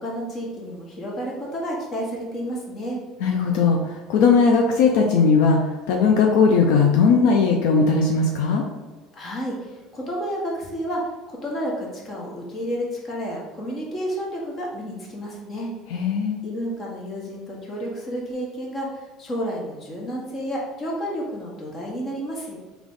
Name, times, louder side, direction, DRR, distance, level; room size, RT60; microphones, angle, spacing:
voice 1, 0.0-3.0 9.1-11.0 11.3-15.7 16.4-22.6, equal, 40° left, -2 dB, 1.3 m, -31 dB
voice 2, 3.2-8.6 15.9-16.4, left 5 dB, 80° left, 2 dB, 0.4 m, -18 dB
3.7 x 2.9 x 3.6 m, 1.3 s
supercardioid pair, 105°, 0 cm